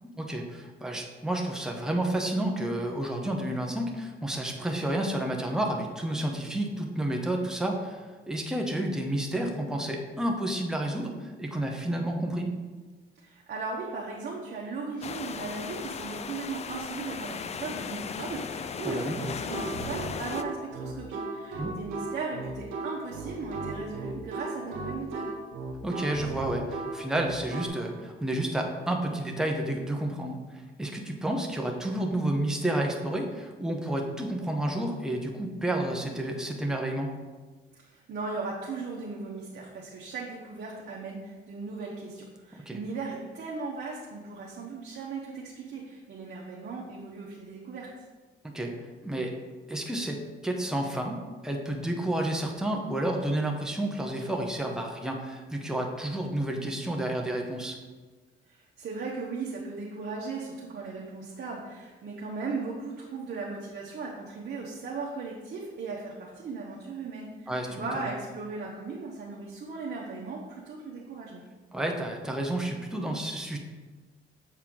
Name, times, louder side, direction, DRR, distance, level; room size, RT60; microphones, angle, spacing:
voice 1, 0.1-12.6 18.9-19.2 21.6-21.7 25.8-37.1 42.7-42.8 48.5-48.8 49.0-49.4 49.7-51.2 51.4-57.8 67.5-68.1 71.7-73.6, right 1 dB, 5° right, 1 dB, 0.9 m, -30 dB
voice 2, 13.2-25.3 37.7-48.1 58.4-71.4, right 4 dB, 55° right, -3 dB, 1.0 m, -37 dB
sound 1, 15.0-20.4, left 6 dB, 35° left, 0.3 m, -37 dB
sound 2, 19.1-27.7, right 3 dB, 85° right, 1.0 m, -36 dB
7.4 x 4.3 x 3.8 m, 1.3 s
cardioid pair, 90°, 20 cm